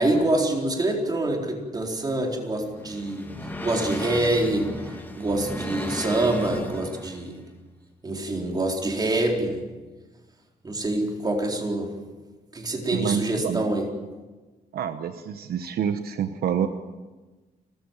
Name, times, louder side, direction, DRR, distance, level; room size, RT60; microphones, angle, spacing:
voice 1, 0.0-3.3 3.6-7.4 8.0-9.6 10.6-11.9 12.5-13.9, right 2 dB, 25° right, 1 dB, 4.2 m, -26 dB
sound 1, 2.3-7.3, left 1 dB, 10° left, 2.7 m, -35 dB
voice 2, 12.9-13.6 14.7-16.7, right 8 dB, 75° right, 8 dB, 1.1 m, -27 dB
29.5 x 14.0 x 7.4 m, 1.3 s
cardioid pair, 130°, 16 cm